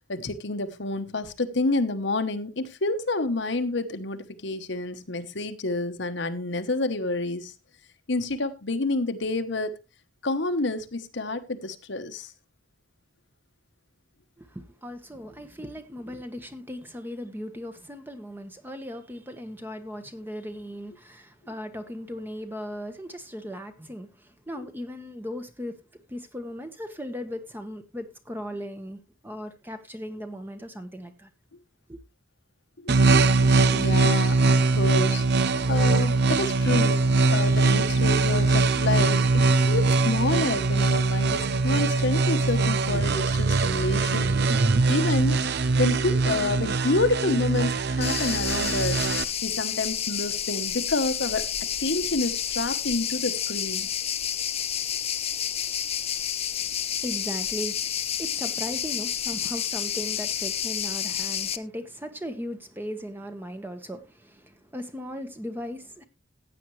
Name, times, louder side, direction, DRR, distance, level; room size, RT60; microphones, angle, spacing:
voice 1, 0.1-7.5 8.1-9.7 10.2-12.3 32.8-33.3 33.7-35.2 35.7-37.0 37.3-44.4 44.9-45.4 45.8-49.0 49.4-51.4 51.8-53.9, left 2 dB, 60° left, 1.1 m, -28 dB
voice 2, 14.4-25.8 26.1-31.3 31.9-32.0 56.5-66.0, equal, 10° right, 1.3 m, -37 dB
sound 1, 32.9-49.2, right 3 dB, 55° right, 0.6 m, -22 dB
sound 2, 48.0-61.6, left 9 dB, 30° left, 0.7 m, -30 dB
15.0 x 9.1 x 3.2 m
head